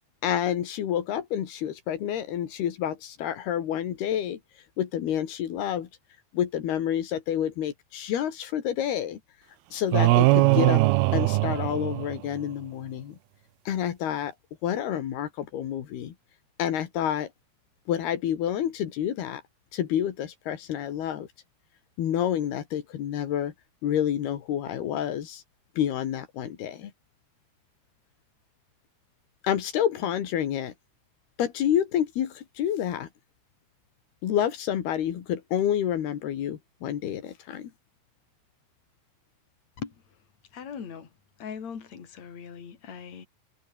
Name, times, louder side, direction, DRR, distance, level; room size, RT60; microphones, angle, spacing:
voice 1, 0.2-4.4 4.8-5.9 6.3-9.2 9.7-10.8 11.1-13.2 13.7-14.3 14.6-16.1 16.6-17.3 17.9-19.4 19.7-21.3 22.0-23.5 23.8-25.4 25.8-26.9 29.4-30.7 31.4-33.1 34.2-37.7, left 10 dB, 85° left, 4.1 m, -28 dB
sound 1, 9.9-12.4, right 19 dB, 85° right, 2.6 m, -21 dB
voice 2, 40.5-41.1 41.4-43.3, left 7 dB, 45° left, 4.4 m, -39 dB
omnidirectional pair, 4.4 m